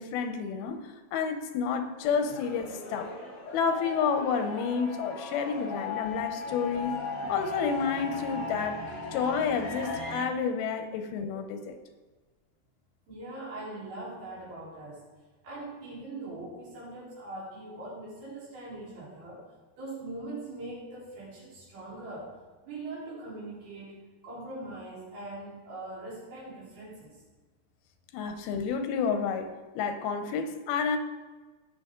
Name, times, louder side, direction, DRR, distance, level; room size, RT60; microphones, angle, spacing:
voice 1, 0.0-3.1 3.5-8.8 9.1-11.8 28.1-31.0, left 6 dB, 90° left, 7 dB, 2.8 m, -30 dB
sound 1, 2.0-10.2, left 3 dB, 35° left, 3.9 m, -37 dB
voice 2, 13.1-15.0 15.4-19.4 19.8-22.3 22.6-27.2, right 2 dB, 80° right, -8 dB, 5.7 m, -41 dB
18.0 x 6.5 x 3.8 m, 1.3 s
omnidirectional pair, 4.2 m